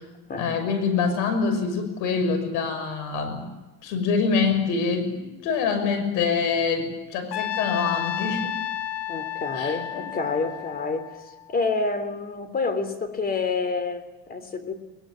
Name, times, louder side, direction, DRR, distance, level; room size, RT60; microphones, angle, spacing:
voice 1, 0.4-3.5 3.8-8.5 9.5-10.1, left 5 dB, 75° left, 9 dB, 6.3 m, -25 dB
Trumpet, 7.3-11.5, left 11 dB, 50° left, 1.0 m, -32 dB
voice 2, 9.1-11.1 11.5-14.7, left 4 dB, 30° left, 12 dB, 3.3 m, -28 dB
22.5 x 21.0 x 9.0 m, 1.1 s
cardioid pair, 120°, 31 cm